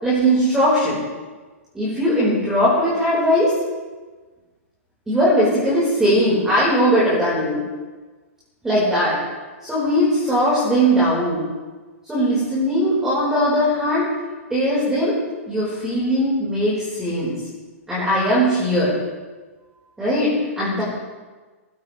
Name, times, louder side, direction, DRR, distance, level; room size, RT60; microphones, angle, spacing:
voice 1, 0.0-1.0 1.7-3.5 5.1-7.6 8.6-9.2 9.6-11.4 12.0-14.1 14.5-15.2 15.5-17.3 17.9-18.9 20.0-20.8, equal, 5° right, -9 dB, 4.9 m, -19 dB
20.0 x 15.5 x 3.4 m, 1.3 s
hypercardioid pair, 145°, 8 cm